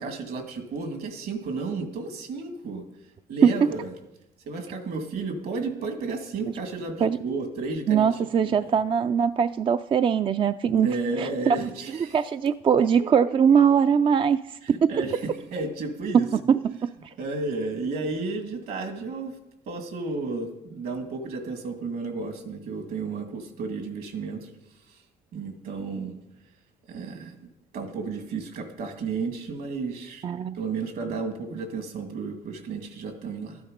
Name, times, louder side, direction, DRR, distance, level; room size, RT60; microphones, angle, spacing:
voice 1, 0.0-2.8 3.3-3.9 4.5-8.8 10.6-12.3 12.8-13.8 14.6-16.3 17.2-19.3 19.7-24.5 25.3-26.2 26.9-27.4 27.7-30.2 30.5-33.6, right 4 dB, 65° right, 6 dB, 2.2 m, -33 dB
voice 2, 3.4-3.7 7.0-7.2 7.9-10.9 11.2-11.6 12.1-14.4 14.7-14.9 16.1-16.9 30.2-30.6, right 7 dB, 30° right, 11 dB, 0.3 m, -21 dB
13.0 x 9.6 x 5.1 m, 0.89 s
cardioid pair, 110°, 17 cm